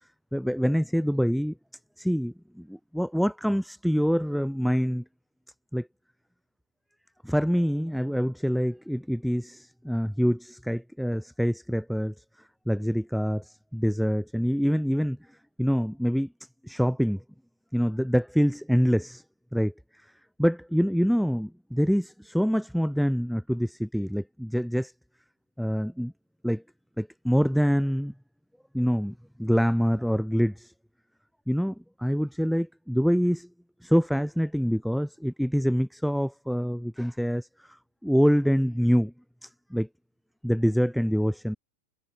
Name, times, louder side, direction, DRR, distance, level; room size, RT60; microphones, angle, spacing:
voice 1, 0.3-1.5 2.0-5.0 5.7-5.9 7.2-12.1 12.7-15.2 15.6-16.3 16.6-17.2 17.7-19.2 19.5-19.7 20.4-24.9 25.6-26.1 26.4-26.6 27.0-28.1 28.7-29.1 29.4-30.7 31.5-33.5 33.8-37.8 38.0-39.1 39.4-39.9 40.4-41.6, equal, ahead, 4.3 m, -25 dB
figure-of-eight pair, 90°, 0 cm